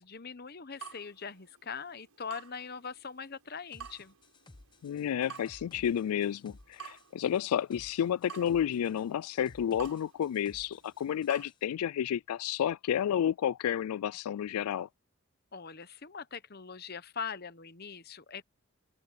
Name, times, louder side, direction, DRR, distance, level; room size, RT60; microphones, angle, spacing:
voice 1, 0.0-4.1 15.5-18.4, left 6 dB, 45° left, 1.0 m, -42 dB
Water tap faucet / Drip, 0.8-11.5, right 7 dB, 90° right, 7.0 m, -52 dB
sound 1, 3.7-11.6, left 2 dB, 20° left, 0.7 m, -57 dB
voice 2, 4.8-14.9, left 9 dB, 85° left, 0.3 m, -31 dB
head